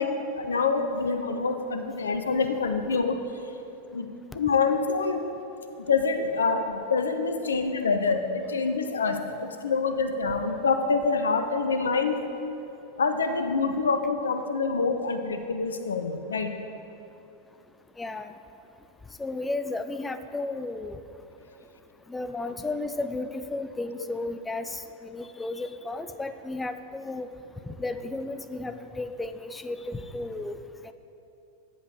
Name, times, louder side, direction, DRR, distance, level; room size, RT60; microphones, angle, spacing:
voice 1, 0.0-3.2 3.9-4.1 4.3-5.2 5.9-12.2 13.0-16.5, left 4 dB, 70° left, 7 dB, 0.5 m, -26 dB
voice 2, 18.0-18.3 19.2-21.0 22.1-27.3 27.7-30.9, left 2 dB, 10° left, 10 dB, 0.3 m, -34 dB
8.1 x 5.2 x 4.6 m, 2.8 s
figure-of-eight pair, 90°, 0 cm